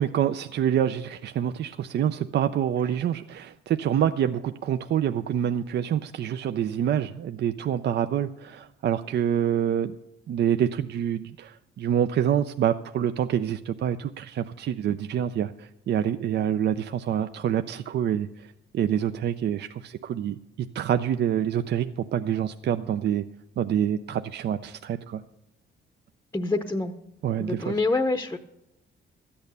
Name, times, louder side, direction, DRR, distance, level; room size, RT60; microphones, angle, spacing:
voice 1, 0.0-9.9 10.3-18.5 18.7-23.2 23.6-25.2 27.2-27.8, right 9 dB, 60° right, 10 dB, 0.5 m, -26 dB
voice 2, 26.3-26.9 27.4-28.4, left 3 dB, 10° left, 8 dB, 0.7 m, -26 dB
13.0 x 8.7 x 6.8 m, 0.89 s
cardioid pair, 90°, 20 cm